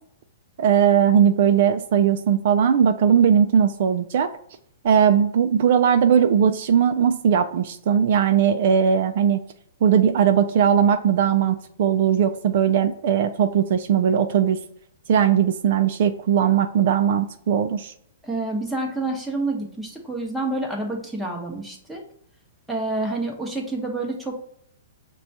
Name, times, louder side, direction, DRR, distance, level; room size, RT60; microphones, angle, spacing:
voice 1, 0.6-4.3 4.8-9.4 9.8-14.6 15.1-17.9, right 8 dB, 55° right, 7 dB, 0.3 m, -19 dB
voice 2, 18.2-22.0 22.7-24.4, right 2 dB, ahead, -1 dB, 0.8 m, -28 dB
5.9 x 2.2 x 2.7 m, 0.65 s
hypercardioid pair, 150°, 0 cm